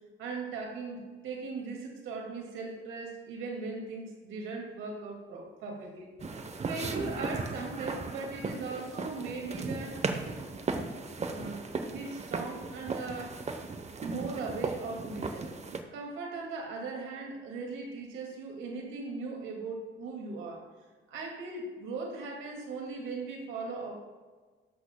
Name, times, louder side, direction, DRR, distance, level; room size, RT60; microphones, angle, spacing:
voice 1, 0.2-6.1 6.7-10.0 11.2-13.6 14.0-15.5 15.9-20.7 21.1-23.9, right 3 dB, 90° right, 1 dB, 2.2 m, -39 dB
sound 1, 6.2-15.8, right 3 dB, 35° right, 0.9 m, -36 dB
12.5 x 7.9 x 2.2 m, 1.4 s
cardioid pair, 90°, 20 cm